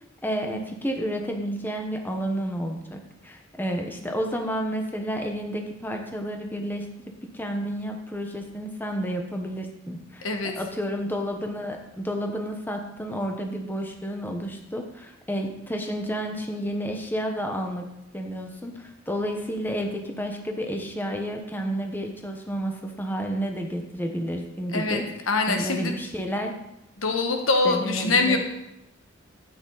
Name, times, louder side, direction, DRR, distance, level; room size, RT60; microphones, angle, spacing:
voice 1, 0.2-6.9 7.3-17.9 18.1-25.1 25.5-26.6 27.6-28.4, equal, 10° left, 3 dB, 1.1 m, -31 dB
voice 2, 10.2-10.5 24.7-25.0 25.3-25.9 27.0-28.4, left 3 dB, 75° left, 4 dB, 1.5 m, -23 dB
12.0 x 9.0 x 4.1 m, 0.86 s
head